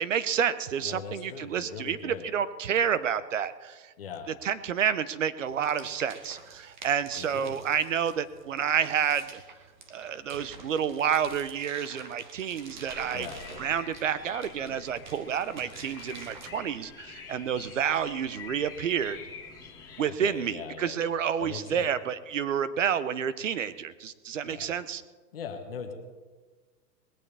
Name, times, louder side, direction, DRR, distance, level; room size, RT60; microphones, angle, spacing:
voice 1, 0.0-3.9 4.4-9.4 9.9-13.3 13.6-19.2 20.0-25.0, right 8 dB, 50° right, 15 dB, 0.8 m, -29 dB
voice 2, 0.8-2.3 4.0-4.3 7.2-7.6 13.1-13.4 20.0-21.1 21.4-21.9 24.4-24.7 25.3-25.9, left 6 dB, 35° left, 4 dB, 1.3 m, -40 dB
sound 1, 5.5-16.5, right 4 dB, 30° right, 1.2 m, -48 dB
sound 2, 12.8-20.0, left 6 dB, 5° left, 1.6 m, -47 dB
20.5 x 16.0 x 3.4 m, 1.4 s
hypercardioid pair, 180°, 49 cm